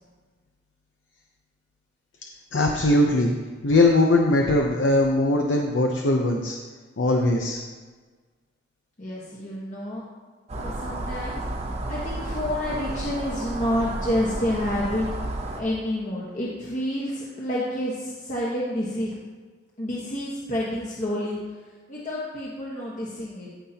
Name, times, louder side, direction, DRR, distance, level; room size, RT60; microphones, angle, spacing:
voice 1, 2.5-3.3 3.6-6.6 7.0-7.6, left 2 dB, 75° left, 1 dB, 0.7 m, -20 dB
voice 2, 9.0-10.0 10.6-11.4 11.9-15.1 15.6-19.1 19.8-21.4 21.9-23.5, left 1 dB, 40° left, -7 dB, 1.3 m, -29 dB
sound 1, 10.5-15.6, right 1 dB, 35° right, 0.8 m, -32 dB
15.5 x 5.6 x 2.9 m, 1.4 s
head